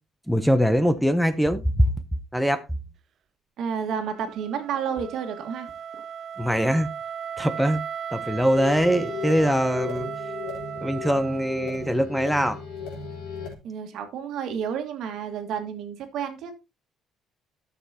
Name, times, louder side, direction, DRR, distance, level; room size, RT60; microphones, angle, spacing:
voice 1, 0.3-1.9 2.3-2.6 6.4-6.9 7.4-7.8 8.1-10.1 10.8-12.6, equal, ahead, 0.6 m, -22 dB
voice 2, 3.6-5.7 13.6-16.5, right 7 dB, 70° right, 1.7 m, -30 dB
Wind instrument woodwind instrument, 4.0-12.0, right 8 dB, 50° right, 0.4 m, -36 dB
sound 1, 8.5-13.6, left 5 dB, 90° left, 3.5 m, -35 dB
12.5 x 6.7 x 2.8 m
cardioid pair, 135°, 0 cm